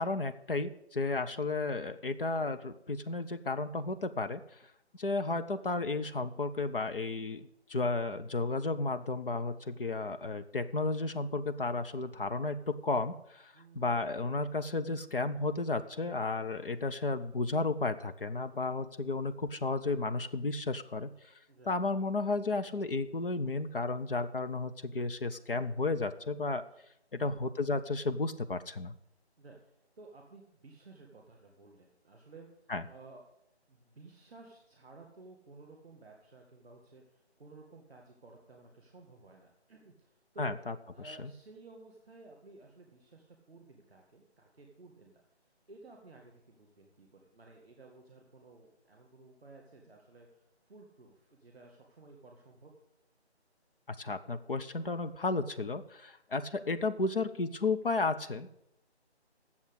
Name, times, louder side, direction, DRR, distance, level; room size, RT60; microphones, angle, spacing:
voice 1, 0.0-4.4 5.0-21.1 21.7-26.6 27.1-28.9 32.7-32.8 40.4-40.7 41.0-41.3 53.9-58.5, left 3 dB, 55° left, 10 dB, 0.7 m, -33 dB
voice 2, 11.9-12.3 13.5-14.0 21.5-21.8 27.1-27.4 29.4-33.2 33.7-40.5 40.9-52.7, right 3 dB, 5° left, -12 dB, 0.7 m, -55 dB
8.6 x 7.2 x 8.1 m, 0.79 s
figure-of-eight pair, 165°, 33 cm